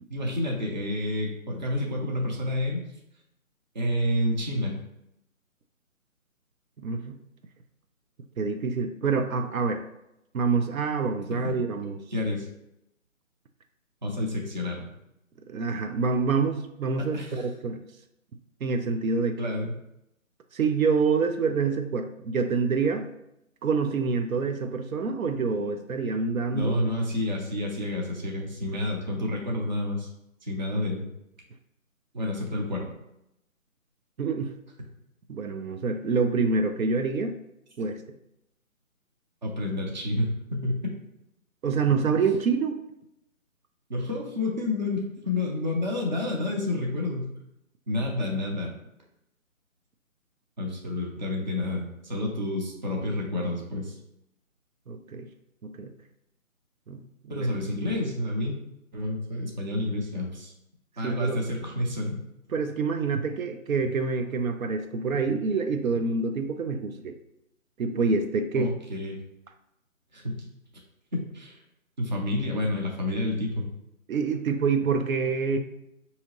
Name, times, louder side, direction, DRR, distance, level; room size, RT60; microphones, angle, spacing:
voice 1, 0.1-2.8 3.7-4.7 11.3-11.5 12.1-12.5 14.0-14.9 17.0-17.4 19.4-19.8 26.5-30.1 30.4-31.1 32.1-32.8 39.4-40.9 43.9-47.3 47.9-48.7 50.6-54.0 57.3-58.6 58.9-60.5 61.0-62.2 68.6-69.2 70.1-70.5 71.1-71.6 72.0-73.7, left 1 dB, 35° right, 0 dB, 0.6 m, -29 dB
voice 2, 6.8-7.2 8.4-9.8 10.3-12.0 15.5-17.8 18.6-19.4 20.5-23.1 23.6-26.7 34.2-34.5 35.3-37.3 37.8-38.0 41.6-42.8 54.9-55.3 55.6-55.9 56.9-57.0 57.4-57.5 61.0-61.4 62.5-67.1 67.8-68.7 74.1-75.6, right 4 dB, 75° right, 6 dB, 0.6 m, -26 dB
4.7 x 2.8 x 2.9 m, 0.83 s
hypercardioid pair, 160°, 41 cm